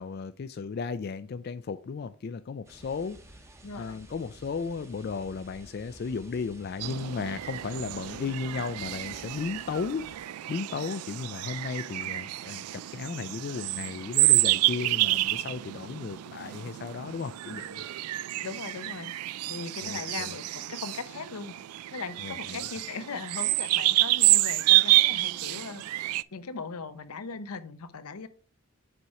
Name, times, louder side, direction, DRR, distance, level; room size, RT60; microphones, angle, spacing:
voice 1, 0.0-3.2 3.7-17.9 19.8-20.3 22.2-22.6, left 5 dB, 45° left, 0.3 m, -35 dB
sound 1, 2.6-10.2, right 1 dB, 10° right, 0.8 m, -52 dB
voice 2, 3.6-4.0 18.4-19.1 19.5-21.5 21.9-25.8 26.3-28.3, left 4 dB, 85° left, 0.7 m, -39 dB
sound 2, 6.8-26.2, right 18 dB, 85° right, 0.3 m, -28 dB
6.8 x 4.4 x 4.7 m
head